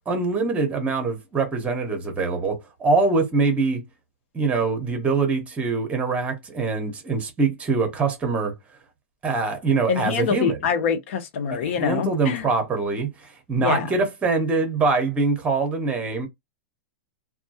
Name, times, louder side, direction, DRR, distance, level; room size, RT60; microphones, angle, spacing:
voice 1, 0.1-3.8 4.3-8.5 9.2-10.6 11.5-16.3, right 4 dB, 15° right, 0.9 m, -24 dB
voice 2, 9.9-12.5 13.6-13.9, left 6 dB, 60° left, 0.7 m, -25 dB
2.2 x 2.2 x 2.8 m
hypercardioid pair, 135°, 8 cm